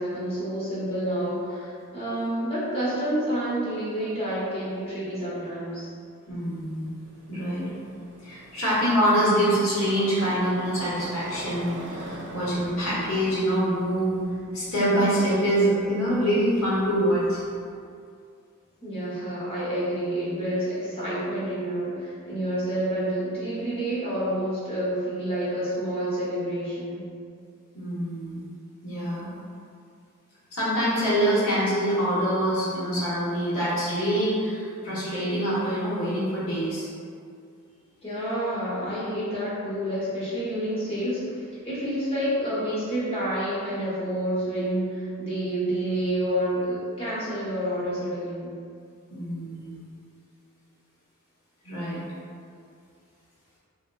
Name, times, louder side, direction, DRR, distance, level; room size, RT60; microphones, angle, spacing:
voice 1, 0.0-5.9 18.8-27.0 38.0-48.5, right 1 dB, 25° left, -9 dB, 0.8 m, -29 dB
voice 2, 6.3-6.9 7.3-7.7 8.2-14.2 14.5-17.4 27.7-28.4 28.8-29.3 30.5-36.9 49.1-49.8 51.6-52.0, equal, 70° left, -8 dB, 0.9 m, -25 dB
Motorcycle, 6.3-17.7, right 1 dB, 50° right, 0.3 m, -44 dB
3.6 x 2.0 x 2.2 m, 2.3 s
head